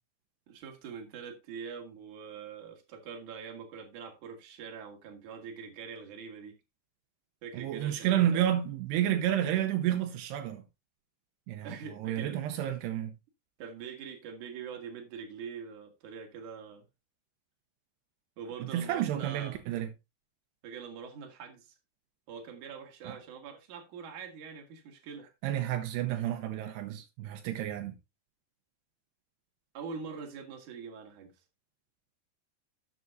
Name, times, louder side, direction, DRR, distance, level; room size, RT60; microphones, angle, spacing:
voice 1, 0.5-6.5 7.4-8.4 11.6-12.8 13.6-16.8 18.4-19.6 20.6-21.7 22.3-25.3 29.7-31.3, right 6 dB, 55° right, 3.1 m, -44 dB
voice 2, 7.5-10.6 11.5-13.1 18.7-19.9 23.1-23.2 25.4-28.0, right 11 dB, 80° right, 2.9 m, -30 dB
12.5 x 8.4 x 2.6 m
omnidirectional pair, 4.8 m